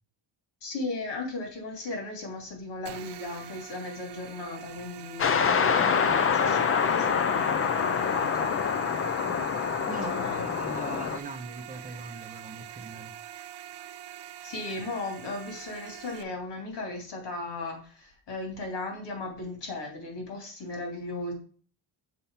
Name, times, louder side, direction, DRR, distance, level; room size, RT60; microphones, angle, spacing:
voice 1, 0.6-8.5 10.1-10.4 12.3-12.4 14.4-21.3, left 2 dB, 65° left, 3.2 m, -37 dB
sound 1, 2.9-16.2, right 11 dB, 65° right, 0.7 m, -44 dB
sound 2, 5.2-11.2, left 6 dB, 30° left, 0.4 m, -26 dB
voice 2, 9.9-13.1, right 3 dB, 20° right, 0.7 m, -41 dB
6.9 x 4.3 x 5.6 m
cardioid pair, 170°, 44 cm